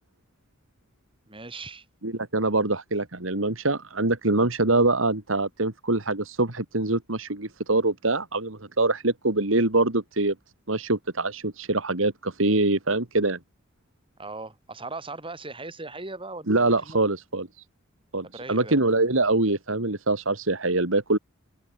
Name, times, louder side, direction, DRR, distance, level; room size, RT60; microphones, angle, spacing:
voice 1, 1.3-1.9 14.2-17.0 18.3-18.8, right 3 dB, 25° right, 7.9 m, -38 dB
voice 2, 2.0-10.3 10.7-13.4 16.5-17.5 18.1-21.2, right 2 dB, 75° right, 2.6 m, -24 dB
open air
head